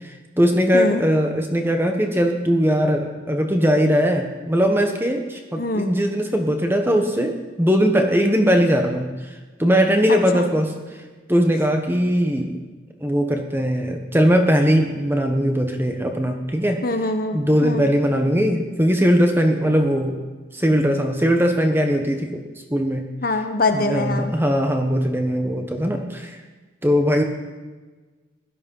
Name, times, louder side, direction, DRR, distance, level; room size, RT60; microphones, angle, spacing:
voice 1, 0.4-7.3 7.6-9.1 9.6-10.7 11.3-12.5 13.0-16.8 17.3-20.2 20.5-22.4 22.7-23.0 23.7-26.4 26.8-27.2, equal, 10° right, 4 dB, 1.2 m, -20 dB
voice 2, 5.6-5.9 10.1-10.5 16.8-17.9 23.2-24.3, left 2 dB, 45° left, 6 dB, 1.2 m, -24 dB
17.0 x 12.5 x 5.6 m, 1.3 s
head